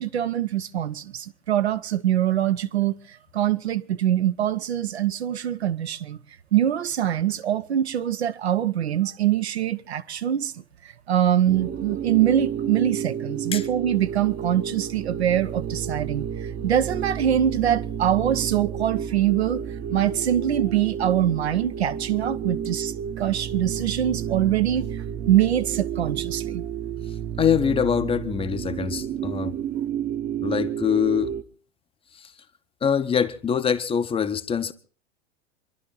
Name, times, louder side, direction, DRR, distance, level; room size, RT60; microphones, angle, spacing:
voice 1, 0.0-2.9 3.3-6.2 6.5-10.5 11.1-16.3 16.6-19.6 19.9-24.9 25.3-26.6, right 11 dB, 65° right, 0.9 m, -23 dB
sound 1, 11.5-31.4, right 8 dB, 25° right, 1.0 m, -31 dB
voice 2, 27.4-29.5 30.4-31.3 32.1-32.3 32.8-34.7, left 8 dB, 15° left, 0.9 m, -24 dB
27.0 x 11.5 x 3.9 m
figure-of-eight pair, 90°, 35 cm